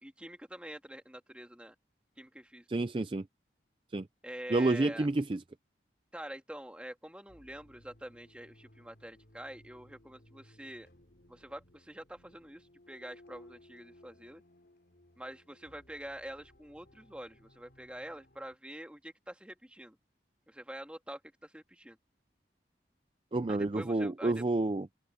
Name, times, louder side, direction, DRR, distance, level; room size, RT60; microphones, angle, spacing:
voice 1, 0.0-1.7 2.2-2.7 4.2-5.1 6.1-10.9 11.3-14.4 15.2-20.0 20.5-22.0 23.5-24.4, right 1 dB, 5° right, 1.9 m, -46 dB
voice 2, 2.7-3.2 3.9-4.0 4.5-5.4 23.3-24.9, right 2 dB, 30° right, 0.4 m, -29 dB
sound 1, 7.3-18.6, left 1 dB, 60° left, 2.9 m, -61 dB
open air
head